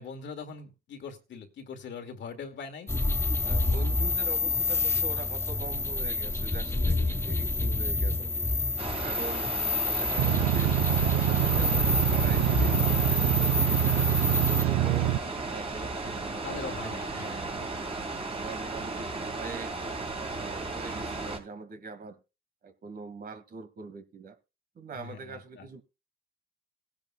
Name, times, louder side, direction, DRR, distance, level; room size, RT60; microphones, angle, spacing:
voice 1, 0.0-2.9 16.4-17.5 25.0-25.7, left 5 dB, 65° left, 2.2 m, -41 dB
sound 1, 2.9-14.6, left 2 dB, 10° left, 0.8 m, -28 dB
voice 2, 3.4-8.3 9.0-9.4 9.8-10.8 11.3-13.8 14.2-17.7 18.3-19.8 20.4-22.2 22.6-24.4 24.8-25.8, right 4 dB, 50° right, 2.0 m, -43 dB
sound 2, 8.8-21.4, right 3 dB, 30° right, 3.4 m, -35 dB
sound 3, 10.2-15.2, right 13 dB, 85° right, 0.7 m, -25 dB
18.0 x 10.5 x 2.3 m
cardioid pair, 90°, 20 cm